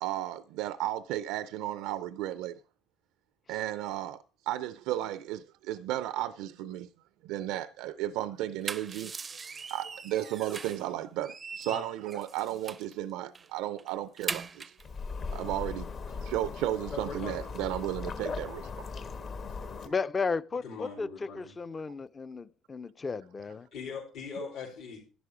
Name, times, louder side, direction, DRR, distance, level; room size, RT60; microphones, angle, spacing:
voice 1, 0.0-2.6 3.5-6.9 7.2-9.1 9.7-14.6 15.3-15.9 16.2-18.9, right 13 dB, 85° right, 0.5 m, -34 dB
sound 1, 8.4-10.9 11.2-12.9 13.3-13.5 13.8-14.8, right 5 dB, 30° right, 0.5 m, -40 dB
sound 2, 14.8-19.9, left 4 dB, 50° left, 1.3 m, -38 dB
voice 2, 16.9-17.4 20.6-21.5 23.7-25.0, left 5 dB, 75° left, 3.9 m, -40 dB
voice 3, 19.8-23.7, left 4 dB, 25° left, 0.5 m, -34 dB
11.0 x 10.5 x 4.9 m
cardioid pair, 110°, 0 cm